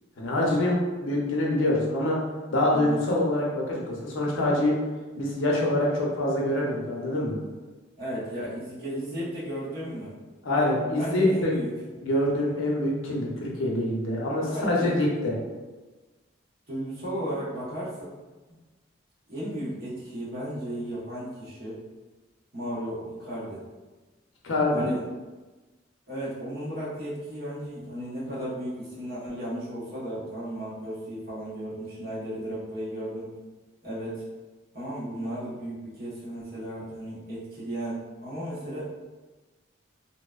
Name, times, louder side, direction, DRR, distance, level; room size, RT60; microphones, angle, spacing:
voice 1, 0.2-2.2 2.5-4.8 5.2-7.4 10.4-11.5 12.0-15.3 24.4-24.9, left 1 dB, 85° left, -3 dB, 0.6 m, -25 dB
voice 2, 8.0-10.1 11.0-11.7 14.4-15.0 16.7-18.1 18.5-18.6 19.3-21.8 22.5-23.6 24.7-25.0 26.1-33.3 33.8-34.2 34.7-38.8, right 1 dB, 50° right, -9 dB, 0.9 m, -34 dB
2.6 x 2.1 x 2.2 m, 1.2 s
head